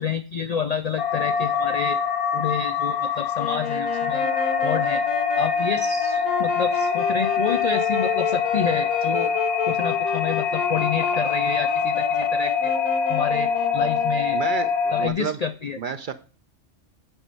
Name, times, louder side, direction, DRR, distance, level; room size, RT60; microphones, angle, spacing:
voice 1, 0.0-2.0 2.3-4.3 4.6-5.0 5.4-9.3 9.7-12.7 13.1-14.4 14.9-15.8, left 6 dB, 85° left, 10 dB, 0.3 m, -29 dB
sound 1, 1.0-15.1, left 6 dB, 65° left, 1.0 m, -24 dB
Wind instrument woodwind instrument, 3.4-14.5, left 6 dB, 40° left, 0.7 m, -32 dB
voice 2, 14.3-15.4 15.8-16.1, right 6 dB, 55° right, 10 dB, 0.6 m, -30 dB
6.9 x 5.1 x 6.8 m, 0.40 s
omnidirectional pair, 1.2 m